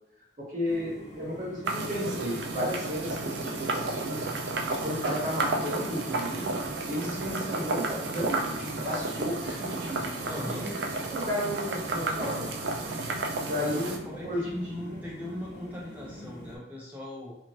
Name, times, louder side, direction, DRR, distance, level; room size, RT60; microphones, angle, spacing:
voice 1, 0.4-4.2 4.8-6.5 6.9-10.1 10.5-10.7 11.1-12.5 13.3-14.5 14.9-15.0, left 1 dB, 45° right, -5 dB, 1.1 m, -33 dB
sound 1, 0.6-16.6, equal, 15° left, 1.2 m, -45 dB
sound 2, 1.6-14.0, right 3 dB, 75° right, 0.4 m, -32 dB
voice 2, 10.2-10.7 13.7-17.4, left 1 dB, 10° right, -5 dB, 0.7 m, -39 dB
2.6 x 2.4 x 3.1 m, 0.79 s
head